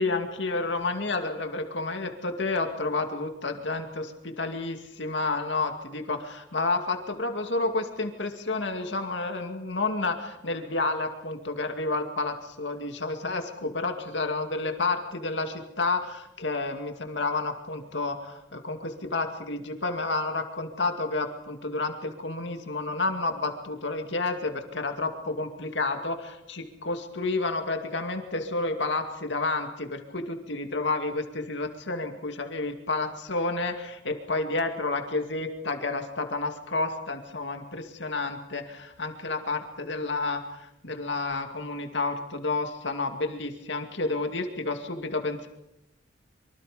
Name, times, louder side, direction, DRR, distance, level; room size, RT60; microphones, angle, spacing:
voice 1, 0.0-45.5, left 3 dB, 70° left, 5 dB, 2.4 m, -30 dB
25.5 x 24.0 x 5.2 m, 0.84 s
head